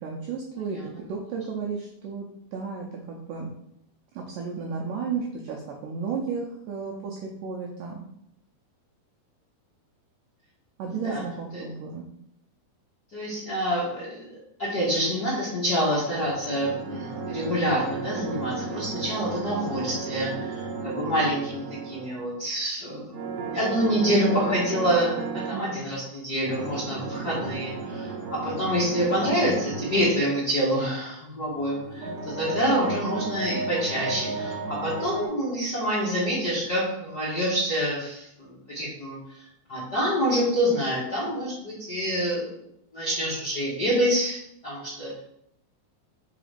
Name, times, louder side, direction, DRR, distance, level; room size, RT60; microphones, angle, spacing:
voice 1, 0.0-3.5 4.1-8.0 10.8-12.1 25.5-25.9 27.2-27.5 32.1-32.2, right 5 dB, 85° right, 0 dB, 1.8 m, -33 dB
voice 2, 10.8-11.2 11.5-11.6 13.1-23.1 23.4-42.5 42.9-44.4 44.6-45.2, equal, 80° left, -8 dB, 0.8 m, -27 dB
sound 1, 16.2-22.3 23.1-25.7 26.4-30.2 31.5-35.3, right 4 dB, 65° right, 1.9 m, -34 dB
5.4 x 3.9 x 5.0 m, 0.77 s
omnidirectional pair, 4.7 m